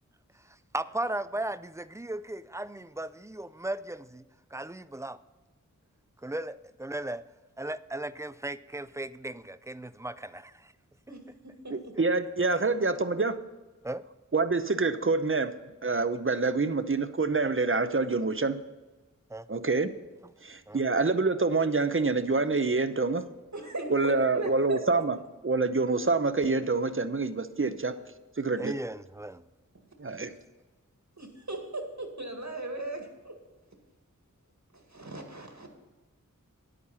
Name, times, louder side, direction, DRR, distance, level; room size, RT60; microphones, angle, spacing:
voice 1, 0.3-4.2 4.5-5.2 6.2-7.2 7.6-10.7 11.7-12.0 13.8-14.0 19.3-19.5 20.7-20.8 28.6-29.4, right 1 dB, 10° right, 15 dB, 0.4 m, -36 dB
voice 2, 11.1-11.9 23.5-24.8 30.2-30.4 31.2-33.4 34.7-35.7, right 2 dB, 60° right, 3 dB, 2.0 m, -38 dB
voice 3, 11.7-13.4 14.3-15.5 15.8-18.6 19.5-19.9 20.4-23.2 23.9-25.2 25.4-28.0 28.4-28.7 30.0-30.3, right 3 dB, 40° right, 11 dB, 0.7 m, -26 dB
10.5 x 8.7 x 5.6 m, 1.2 s
wide cardioid pair, 40°, 32 cm